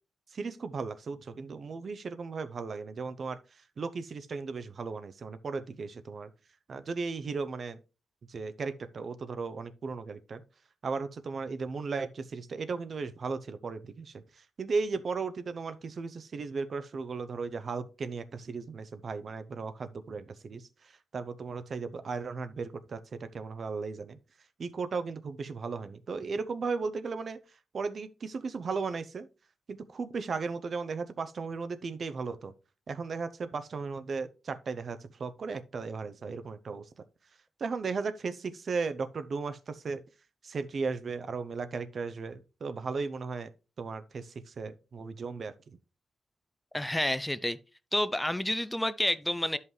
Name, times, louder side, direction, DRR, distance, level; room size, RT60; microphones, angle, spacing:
voice 1, 0.3-3.4 3.8-6.3 6.7-7.8 8.3-10.4 10.8-14.2 14.6-24.2 24.6-27.4 27.7-29.3 29.7-32.5 32.9-36.8 37.6-40.0 40.4-43.5 43.8-45.5, right 4 dB, 50° right, 0.6 m, -36 dB
voice 2, 46.7-47.6 47.9-49.6, left 1 dB, 10° left, 0.4 m, -29 dB
11.0 x 5.5 x 3.1 m
cardioid pair, 105°, 0 cm